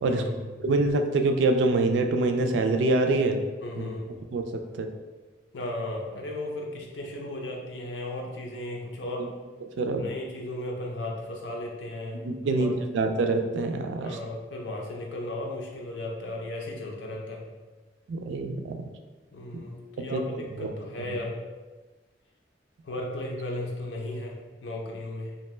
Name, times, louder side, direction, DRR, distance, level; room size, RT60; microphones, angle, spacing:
voice 1, 0.0-0.5 3.6-4.3 5.5-9.3 10.0-12.9 14.0-17.5 19.3-21.4 22.8-25.4, left 1 dB, 80° left, -1 dB, 0.6 m, -35 dB
voice 2, 0.6-3.4 3.8-3.9 4.3-4.5 4.8-4.9 9.8-10.0 12.2-14.2 18.1-18.8 20.0-20.2 20.6-20.7, right 2 dB, 85° right, 6 dB, 0.3 m, -25 dB
2.6 x 2.1 x 3.1 m, 1.3 s
head